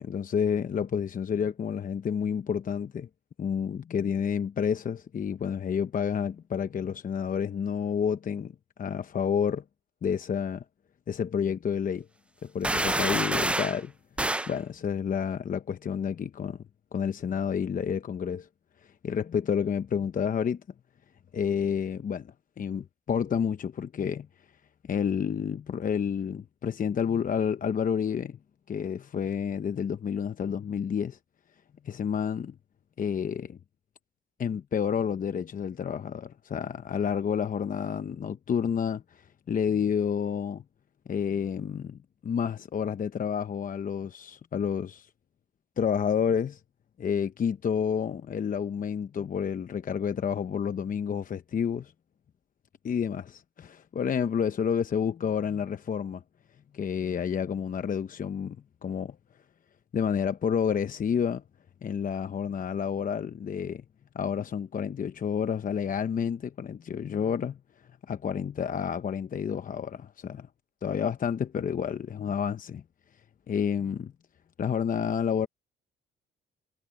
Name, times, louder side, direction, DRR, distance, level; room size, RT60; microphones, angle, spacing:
voice 1, 0.0-3.1 3.4-8.5 8.8-9.6 10.0-10.6 11.1-12.1 12.4-13.9 14.5-16.6 16.9-18.5 19.0-20.6 21.3-24.3 24.8-28.4 28.7-31.2 31.8-32.5 33.0-33.6 34.4-40.6 41.1-45.1 45.8-46.6 47.0-51.9 52.8-56.2 56.7-58.6 58.8-59.2 59.9-61.4 61.8-63.8 64.1-67.6 68.1-70.5 70.8-72.8 73.5-74.1 74.6-75.5, left 7 dB, 45° left, 0.9 m, -29 dB
sound 1, 12.6-13.8 14.2-14.5, right 1 dB, 5° right, 0.4 m, -27 dB
cardioid pair, 90°, 20 cm